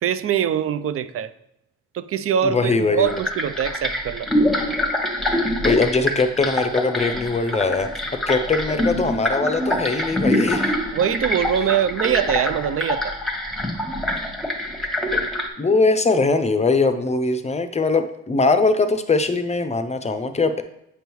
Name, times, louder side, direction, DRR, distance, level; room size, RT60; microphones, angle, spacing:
voice 1, 0.0-1.3 1.9-4.3 10.9-13.2, right 9 dB, 50° right, 0.5 m, -23 dB
voice 2, 2.4-3.2 5.4-10.7 14.8-15.2 15.6-20.6, left 3 dB, 20° left, 0.6 m, -21 dB
sound 1, 3.0-15.5, left 1 dB, ahead, 1.1 m, -25 dB
8.4 x 5.3 x 3.0 m
cardioid pair, 90°, 30 cm